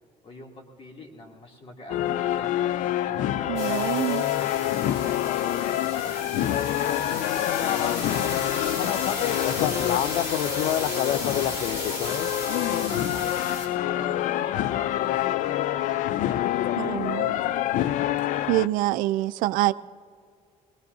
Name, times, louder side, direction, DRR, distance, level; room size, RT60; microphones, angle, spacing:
voice 1, 0.2-2.5 3.0-7.0 7.6-10.2 10.6-11.4 11.8-13.3 13.8-17.4, left 1 dB, 40° left, 1 dB, 2.7 m, -45 dB
sound 1, 1.9-18.7, left 12 dB, 70° left, 0.4 m, -26 dB
voice 2, 3.5-4.2 16.8-17.3 18.5-19.7, right 17 dB, 80° right, 15 dB, 0.4 m, -25 dB
sound 2, 3.6-13.7, left 2 dB, 85° left, 3.1 m, -35 dB
21.0 x 19.5 x 2.7 m, 2.1 s
cardioid pair, 95°, 14 cm